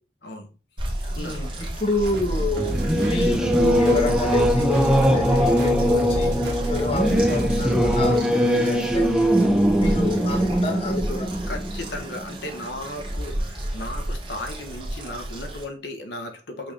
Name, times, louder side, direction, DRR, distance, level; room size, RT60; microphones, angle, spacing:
sound 1, 0.8-15.6, right 1 dB, 30° right, 1.2 m, -34 dB
voice 1, 1.1-9.1 9.8-11.3, left 2 dB, 35° left, 0.7 m, -29 dB
sound 2, 2.0-8.2, right 1 dB, 75° right, 1.4 m, -29 dB
Singing / Musical instrument, 2.6-12.7, equal, 5° right, 0.5 m, -21 dB
voice 2, 11.5-16.7, left 1 dB, 75° left, 0.9 m, -35 dB
5.8 x 2.6 x 3.5 m
head